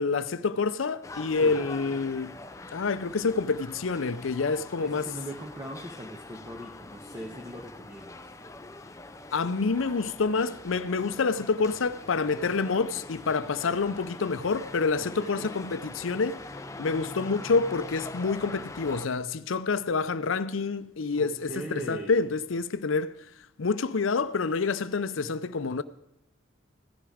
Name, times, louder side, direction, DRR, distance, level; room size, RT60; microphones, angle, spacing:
voice 1, 0.0-2.4 2.7-5.1 9.3-16.4 16.8-23.1 23.6-25.8, left 4 dB, 85° left, 0.6 m, -27 dB
sound 1, 1.0-19.1, left 2 dB, 15° left, 0.5 m, -43 dB
voice 2, 4.8-8.3 15.0-15.5 21.1-22.2, right 1 dB, 15° right, 1.2 m, -40 dB
16.0 x 11.0 x 5.0 m
head